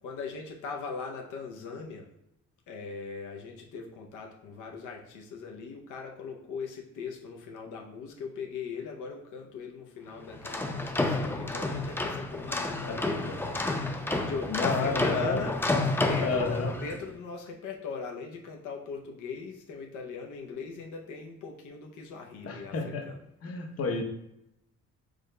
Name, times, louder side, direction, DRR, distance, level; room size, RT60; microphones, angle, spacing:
voice 1, 0.0-2.1 2.7-13.4 14.2-23.2, left 5 dB, 85° left, 1 dB, 0.7 m, -40 dB
sound 1, 10.3-17.0, left 2 dB, 10° left, 0.5 m, -30 dB
voice 2, 14.5-15.4 16.2-16.7 22.4-23.1 23.4-24.0, left 3 dB, 50° left, 2 dB, 0.9 m, -30 dB
4.9 x 3.7 x 2.2 m, 0.83 s
cardioid pair, 90°, 30 cm